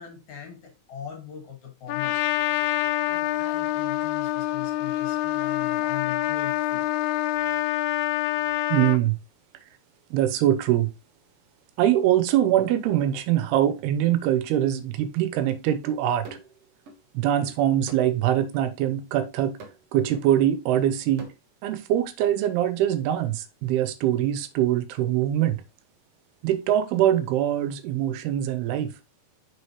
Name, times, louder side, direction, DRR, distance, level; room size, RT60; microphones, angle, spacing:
voice 1, 0.0-2.4 3.0-6.9, left 10 dB, 55° left, 2.9 m, -41 dB
Trumpet, 1.9-9.0, left 15 dB, 85° left, 2.5 m, -26 dB
voice 2, 8.7-9.2 10.1-10.9 11.8-16.3 17.1-19.6 19.9-21.2 21.6-25.6 26.4-28.9, right 11 dB, 85° right, 2.7 m, -23 dB
sound 1, 15.8-17.0 17.4-18.2 18.5-18.7 19.2-19.9 20.1-20.2 20.8-21.3, right 3 dB, 70° right, 1.3 m, -46 dB
6.5 x 6.1 x 3.0 m
omnidirectional pair, 4.6 m